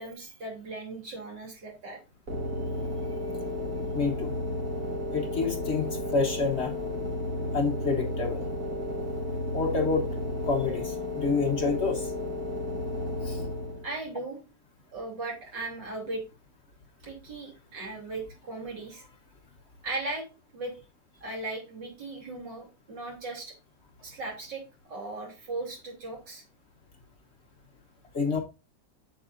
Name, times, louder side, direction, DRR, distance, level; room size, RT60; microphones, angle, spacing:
voice 1, 0.0-2.0 13.8-14.4 14.9-16.2 17.0-19.0 19.8-20.3 20.5-20.7 21.2-23.6 24.0-24.6 24.9-26.4, right 2 dB, 85° right, 3.7 m, -37 dB
sound 1, 2.3-14.0, left 1 dB, 60° right, 2.0 m, -33 dB
voice 2, 3.9-4.3 5.1-6.7 7.5-8.4 9.5-10.1 10.4-12.1 13.2-13.4 28.1-28.4, left 4 dB, 45° left, 1.2 m, -28 dB
7.8 x 7.2 x 2.5 m
omnidirectional pair, 1.9 m